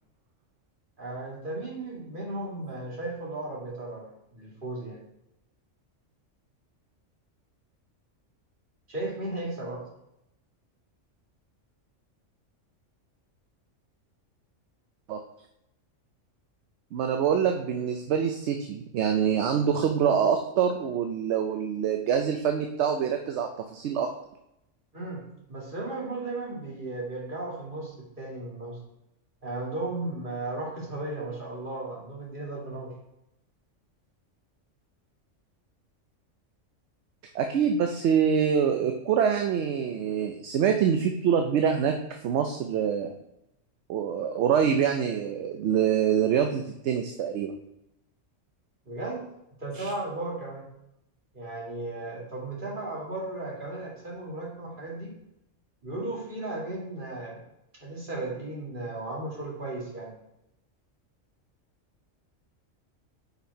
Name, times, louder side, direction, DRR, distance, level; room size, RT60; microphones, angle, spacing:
voice 1, 1.0-5.0 8.9-9.8 24.9-25.2 25.5-28.8 29.4-32.9 48.9-49.2 49.6-50.7 51.3-55.1 55.8-57.4 57.8-60.1, right 2 dB, 40° right, -4 dB, 2.2 m, -35 dB
voice 2, 16.9-24.1 37.3-42.0 42.2-43.1 43.9-47.5 49.7-49.9, right 7 dB, 65° right, 5 dB, 0.8 m, -25 dB
5.6 x 4.3 x 4.5 m, 0.83 s
omnidirectional pair, 1.3 m